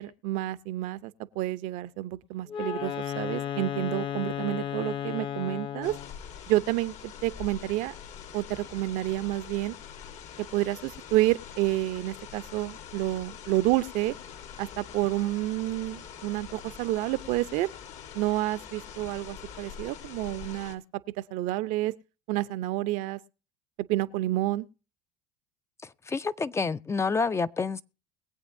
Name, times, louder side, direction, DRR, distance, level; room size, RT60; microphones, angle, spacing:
voice 1, 0.0-5.9 6.5-7.9 8.3-9.8 10.5-14.1 14.6-17.7 18.1-20.8 21.3-21.9 22.3-23.2 23.9-24.7, right 16 dB, 65° right, 0.7 m, -29 dB
Wind instrument woodwind instrument, 2.5-6.2, left 9 dB, 35° left, 0.9 m, -33 dB
sound 1, 5.8-20.8, left 8 dB, 55° left, 1.5 m, -44 dB
voice 2, 26.1-27.8, left 4 dB, 20° left, 0.5 m, -28 dB
22.0 x 8.1 x 2.7 m
supercardioid pair, 90°, 14 cm